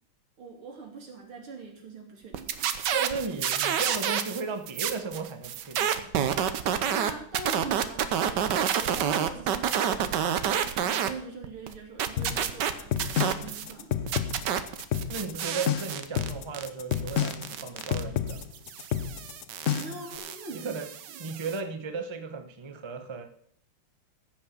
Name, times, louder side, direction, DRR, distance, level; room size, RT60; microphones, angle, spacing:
voice 1, 0.4-2.7 6.8-8.4 8.8-14.0 19.8-20.7, right 4 dB, 85° right, 1 dB, 3.5 m, -42 dB
sound 1, 2.3-4.4 4.7-11.1 11.4-13.7 14.1-21.6, right 9 dB, 65° right, 1.3 m, -29 dB
voice 2, 2.9-6.1 15.1-18.4 20.5-20.9 21.2-23.3, right 4 dB, 25° right, 6 dB, 0.6 m, -35 dB
sound 2, 12.2-20.1, left 9 dB, 85° left, 0.6 m, -30 dB
15.0 x 5.9 x 7.1 m, 0.65 s
omnidirectional pair, 2.3 m